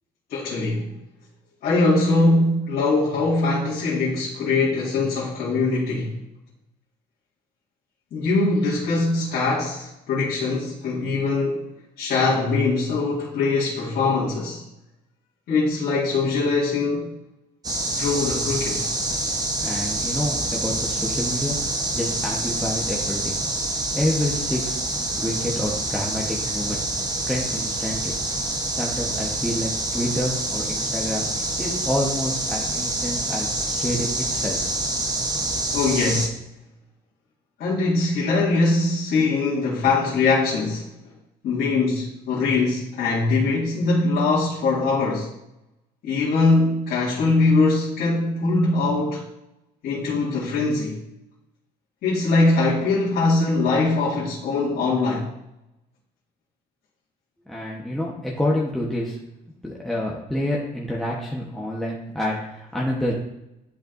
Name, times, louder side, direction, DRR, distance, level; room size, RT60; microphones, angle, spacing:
voice 1, 0.3-0.9 1.6-6.2 8.1-11.7 12.0-14.6 15.5-17.1 18.0-18.9 35.7-36.3 37.6-40.9 41.4-45.3 46.0-49.2 49.8-51.0 52.0-55.3, left 3 dB, 65° left, -8 dB, 2.1 m, -22 dB
sound 1, 17.6-36.3, right 2 dB, 20° right, 1.0 m, -26 dB
voice 2, 19.6-21.6 21.9-23.4 23.9-24.8 25.2-26.8 27.3-28.2 28.7-34.6 57.5-59.2 59.6-63.1, left 1 dB, ahead, -4 dB, 1.1 m, -28 dB
11.0 x 4.4 x 2.6 m, 0.88 s
cardioid pair, 110°, 17 cm